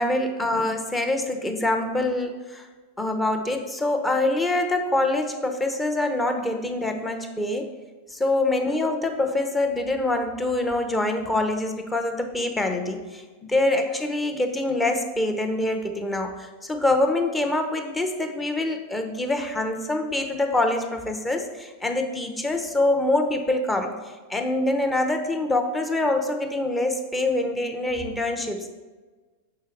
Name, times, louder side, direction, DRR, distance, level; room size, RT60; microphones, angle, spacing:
voice 1, 0.0-2.7 3.0-7.7 8.1-28.7, left 2 dB, 10° left, 5 dB, 0.7 m, -25 dB
6.7 x 5.5 x 3.4 m, 1.3 s
figure-of-eight pair, 90°, 0 cm